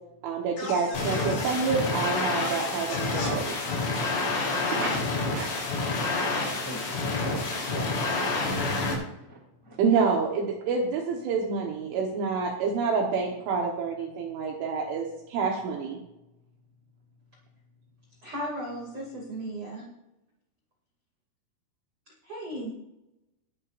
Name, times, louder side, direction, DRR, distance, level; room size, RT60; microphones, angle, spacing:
voice 1, 0.2-3.6 4.8-5.0 5.3-5.6 9.8-16.0, right 5 dB, 75° right, 0 dB, 3.7 m, -28 dB
sound 1, 0.6-1.6 2.4-3.3 3.6-3.9 4.7-5.0, left 3 dB, 60° left, 6.2 m, -37 dB
sound 2, 0.9-8.9, left 3 dB, 85° left, 6.5 m, -28 dB
voice 2, 6.6-8.7 9.2-9.8, right 1 dB, 20° left, 0 dB, 0.6 m, -41 dB
voice 3, 18.2-19.9 22.2-22.7, right 1 dB, 35° right, -3 dB, 2.5 m, -35 dB
20.0 x 12.0 x 2.6 m, 0.91 s
omnidirectional pair, 5.9 m